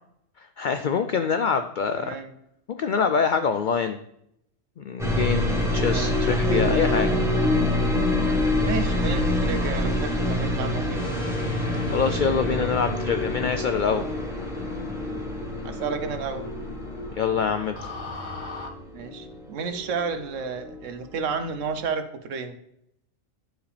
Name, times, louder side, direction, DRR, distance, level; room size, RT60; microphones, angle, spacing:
voice 1, 0.6-2.2 2.7-4.0 4.8-7.2 11.9-14.0 17.2-17.8, left 6 dB, 85° left, 9 dB, 0.4 m, -25 dB
voice 2, 1.9-2.3 5.9-7.3 8.6-11.1 15.6-16.5 18.9-22.5, right 5 dB, 70° right, 9 dB, 1.1 m, -32 dB
sound 1, 5.0-20.8 21.1-21.8, left 1 dB, ahead, 1.2 m, -26 dB
sound 2, 10.9-18.7, left 2 dB, 40° left, 1.0 m, -36 dB
11.0 x 4.8 x 3.3 m, 0.77 s
omnidirectional pair, 1.4 m